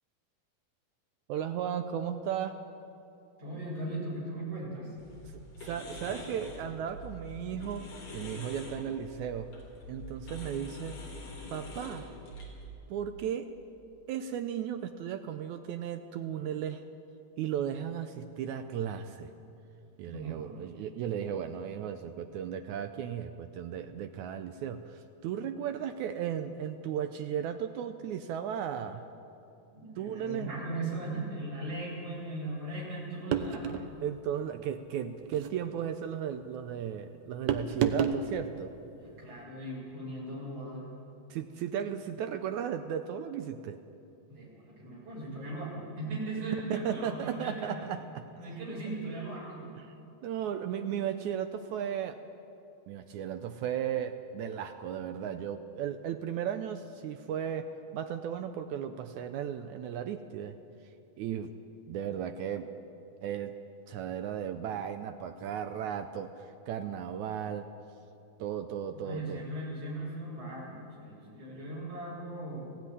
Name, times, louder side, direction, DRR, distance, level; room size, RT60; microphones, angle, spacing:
voice 1, 1.3-2.6 5.2-7.9 8.1-9.5 9.9-11.0 11.5-12.1 12.9-13.5 14.1-16.8 17.4-19.3 20.0-29.0 30.0-30.5 34.0-38.7 41.3-43.8 46.7-48.3 49.8-49.9 50.2-52.2 52.9-60.6 61.2-61.5 61.9-62.7 63.2-63.5 63.9-67.7 68.4-69.5, right 9 dB, 85° right, 8 dB, 1.7 m, -35 dB
voice 2, 3.4-5.0 20.0-20.7 29.7-33.8 38.9-40.9 44.3-47.7 48.4-49.7 68.9-72.8, right 2 dB, 40° right, -5 dB, 8.2 m, -38 dB
sound 1, 5.0-12.7, left 1 dB, 50° left, 4.4 m, -45 dB
sound 2, 33.3-33.9 35.2-35.5 37.5-38.2, right 7 dB, 70° right, 1.7 m, -29 dB
19.0 x 15.5 x 9.8 m, 2.8 s
omnidirectional pair, 4.2 m